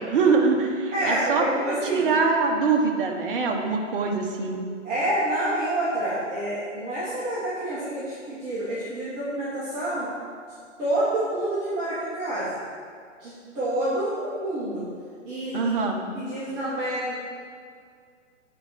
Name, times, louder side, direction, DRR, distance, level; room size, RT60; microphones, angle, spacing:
voice 1, 0.0-4.6 15.5-16.0, right 4 dB, 45° right, 2 dB, 1.2 m, -23 dB
voice 2, 0.9-2.0 4.8-10.1 10.8-12.6 13.2-14.8 15.2-15.8 16.1-17.1, right 1 dB, 20° right, -10 dB, 1.6 m, -28 dB
8.3 x 4.6 x 6.0 m, 2.1 s
figure-of-eight pair, 130°, 38 cm